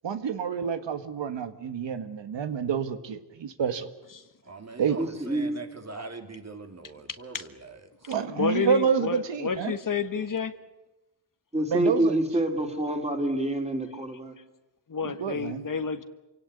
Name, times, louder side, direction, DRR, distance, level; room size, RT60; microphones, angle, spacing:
voice 1, 0.0-3.9 4.8-5.0 8.1-9.7 11.7-12.1 15.0-15.6, right 7 dB, 85° right, 9 dB, 1.6 m, -28 dB
voice 2, 4.4-8.1, right 3 dB, 40° right, 6 dB, 2.9 m, -42 dB
voice 3, 5.0-5.5 11.5-14.4, right 1 dB, 15° right, 4 dB, 4.1 m, -27 dB
voice 4, 7.1-7.4 8.0-10.5 14.9-16.0, left 5 dB, 50° left, 10 dB, 1.5 m, -30 dB
26.5 x 17.5 x 9.8 m, 1.0 s
wide cardioid pair, 90°, 42 cm